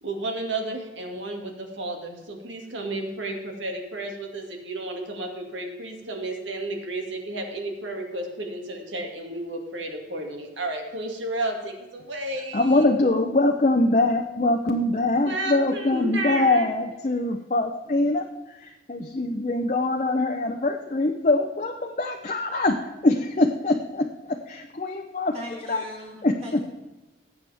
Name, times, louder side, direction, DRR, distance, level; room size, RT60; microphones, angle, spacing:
voice 1, 0.0-12.9 15.2-16.7, right 2 dB, 85° right, 2 dB, 2.2 m, -32 dB
voice 2, 12.5-25.3 25.7-25.8 26.2-26.6, left 2 dB, 40° left, 3 dB, 0.6 m, -23 dB
voice 3, 25.3-26.6, equal, 35° right, -4 dB, 3.9 m, -39 dB
18.5 x 8.3 x 3.5 m, 1.1 s
head